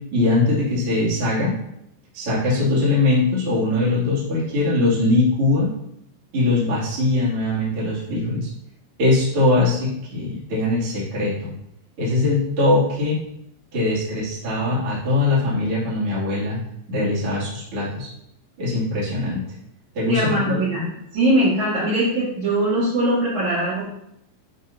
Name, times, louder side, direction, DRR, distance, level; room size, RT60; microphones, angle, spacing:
voice 1, 0.1-1.6 2.1-5.7 6.3-8.5 9.0-11.5 12.0-13.2 13.7-16.6 16.9-18.1 18.6-19.5 19.9-20.9, left 2 dB, 40° right, -8 dB, 2.5 m, -21 dB
voice 2, 20.0-20.8 21.1-23.8, right 1 dB, 55° right, -10 dB, 2.6 m, -21 dB
11.5 x 4.0 x 2.7 m, 0.78 s
omnidirectional pair, 4.9 m